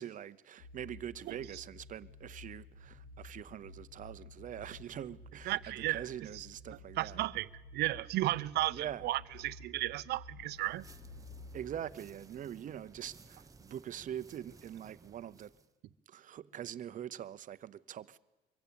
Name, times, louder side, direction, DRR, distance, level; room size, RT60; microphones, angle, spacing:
voice 1, 0.0-7.2 8.7-9.1 11.5-15.5 16.1-18.2, right 10 dB, 50° right, 0.8 m, -44 dB
sound 1, 0.6-11.9, left 3 dB, 55° left, 3.7 m, -53 dB
voice 2, 5.5-6.0 6.3-6.5 7.0-10.9, right 16 dB, 75° right, 0.7 m, -34 dB
sound 2, 10.4-15.7, right 4 dB, 20° right, 1.1 m, -58 dB
24.0 x 15.5 x 8.8 m
cardioid pair, 110°, 17 cm